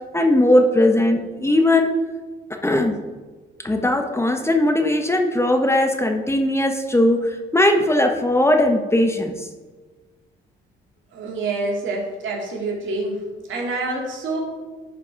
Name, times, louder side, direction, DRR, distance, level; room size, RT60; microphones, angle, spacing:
voice 1, 0.1-1.9 2.6-3.0 3.6-9.5, left 1 dB, 15° left, 4 dB, 0.8 m, -19 dB
voice 2, 11.1-13.2 13.5-14.4, right 2 dB, 75° right, -1 dB, 2.4 m, -27 dB
11.0 x 4.7 x 4.6 m, 1.3 s
cardioid pair, 90°, 20 cm